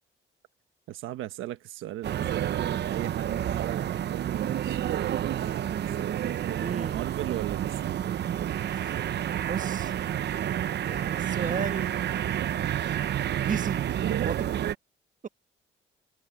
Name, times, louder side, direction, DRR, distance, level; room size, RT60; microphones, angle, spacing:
voice 1, 0.9-6.2 6.9-8.0 14.0-14.7, right 14 dB, 90° right, 1.3 m, -37 dB
sound 1, 2.0-14.7, right 10 dB, 60° right, 0.8 m, -29 dB
voice 2, 6.6-7.0 8.8-8.9 9.4-9.9 10.8-11.9 13.4-13.8 14.2-14.5, right 6 dB, 40° right, 1.6 m, -33 dB
cardioid pair, 90°, 20 cm